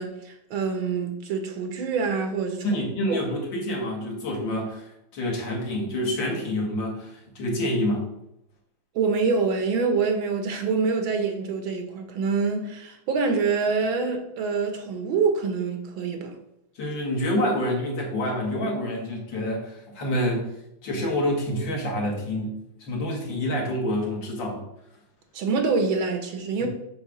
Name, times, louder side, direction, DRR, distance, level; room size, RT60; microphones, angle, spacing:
voice 1, 0.0-2.8 3.1-3.2 9.0-16.3 25.3-26.7, right 4 dB, 85° right, 1.9 m, -26 dB
voice 2, 2.6-4.9 5.1-8.1 16.8-20.5 20.8-22.5 22.9-24.6 26.6-26.7, left 1 dB, 70° left, 2.5 m, -27 dB
7.0 x 3.5 x 6.3 m
omnidirectional pair, 2.1 m